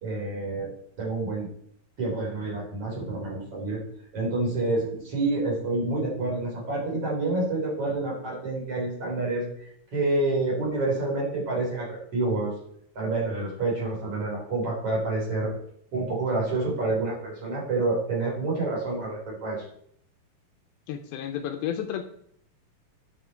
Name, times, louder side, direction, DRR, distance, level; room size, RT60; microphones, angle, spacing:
voice 1, 0.0-0.7 1.0-1.5 2.0-3.8 4.1-9.5 9.9-12.5 13.0-15.5 15.9-19.6, right 2 dB, 40° right, -4 dB, 3.9 m, -28 dB
voice 2, 20.9-22.0, left 10 dB, 80° left, 6 dB, 2.4 m, -31 dB
11.0 x 6.3 x 4.4 m, 0.67 s
omnidirectional pair, 4.5 m